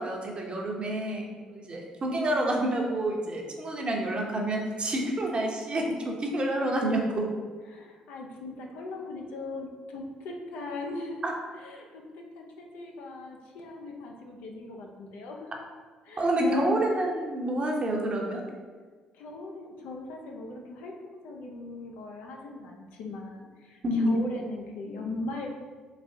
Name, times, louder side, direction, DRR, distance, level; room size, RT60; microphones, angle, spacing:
voice 1, 0.0-7.2 11.2-11.3 16.2-18.4 23.8-24.1, right 1 dB, 35° right, 0 dB, 0.8 m, -28 dB
voice 2, 7.7-11.3 11.6-15.5 16.0-16.7 19.1-25.5, left 2 dB, 65° left, 1 dB, 0.6 m, -39 dB
4.2 x 3.2 x 2.7 m, 1.5 s
hypercardioid pair, 50°, 3 cm